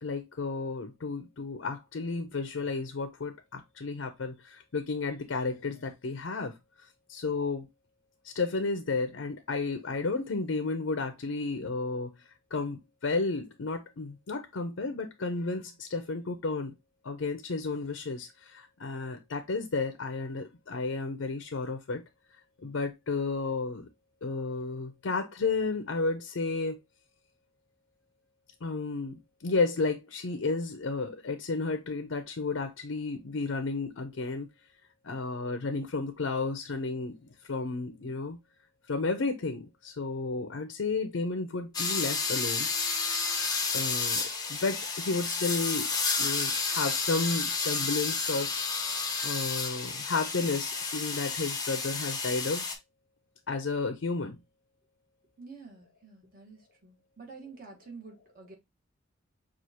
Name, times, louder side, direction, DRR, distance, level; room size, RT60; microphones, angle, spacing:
voice 1, 0.0-6.6 7.1-7.7 8.2-12.1 12.5-16.7 17.0-22.0 22.6-23.9 24.2-26.8 28.6-34.5 35.0-37.2 37.4-38.4 38.9-42.7 43.7-45.9 46.2-48.5 49.2-52.7 53.5-54.4, left 3 dB, 75° left, 0.6 m, -32 dB
sound 1, 41.7-52.7, left 4 dB, 20° left, 0.6 m, -31 dB
voice 2, 55.4-58.5, right 4 dB, 45° right, 1.2 m, -48 dB
6.1 x 2.4 x 2.8 m
head